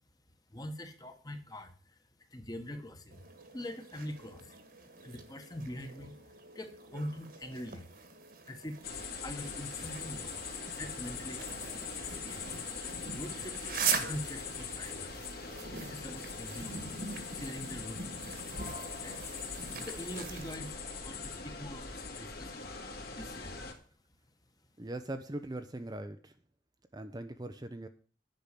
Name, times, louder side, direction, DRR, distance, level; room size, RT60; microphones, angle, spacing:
voice 1, 0.5-3.2 3.5-4.6 5.0-7.9 8.4-10.4 10.7-11.6 12.0-12.5 13.1-15.2 15.8-19.2 19.7-22.7 23.2-23.6, left 1 dB, 20° left, 7 dB, 1.3 m, -44 dB
sound 1, 3.1-20.6, right 6 dB, 50° right, 1.7 m, -42 dB
sound 2, 8.8-23.7, left 4 dB, 55° left, 2.1 m, -41 dB
voice 2, 24.8-26.3 26.9-27.9, right 1 dB, 20° right, 7 dB, 0.6 m, -40 dB
10.5 x 5.6 x 8.3 m, 0.40 s
head